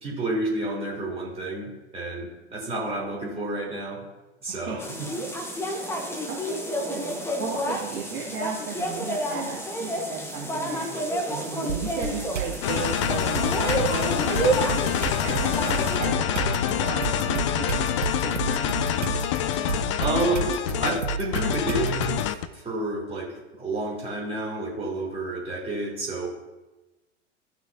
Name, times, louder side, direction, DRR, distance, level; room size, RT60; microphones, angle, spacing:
voice 1, 0.0-4.0 4.4-5.1 20.0-26.3, right 2 dB, 15° right, -5 dB, 3.5 m, -30 dB
voice 2, 4.5-4.9 6.3-7.1 7.4-10.9 11.3-17.9 18.2-19.3, right 5 dB, 30° right, -7 dB, 2.1 m, -35 dB
sound 1, 4.8-16.0, right 1 dB, 5° left, 1.0 m, -30 dB
sound 2, 11.7-12.6 13.0-22.2, right 6 dB, 80° right, 0.9 m, -32 dB
sound 3, 12.6-22.5, left 10 dB, 30° left, 0.3 m, -26 dB
17.0 x 6.0 x 2.8 m, 1.1 s
figure-of-eight pair, 95°, 36 cm